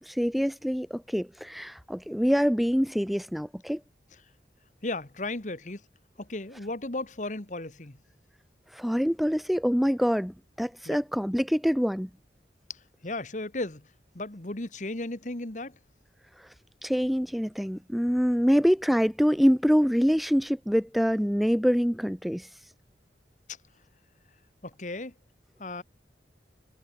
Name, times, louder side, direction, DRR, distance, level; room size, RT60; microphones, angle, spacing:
voice 1, 0.0-3.8 8.7-12.1 16.4-16.5 16.8-22.5, equal, ahead, 0.6 m, -25 dB
voice 2, 4.8-5.8 6.2-8.0 10.9-11.0 12.7-13.9 14.1-15.8 24.6-25.1 25.6-25.8, left 2 dB, 45° left, 1.6 m, -35 dB
head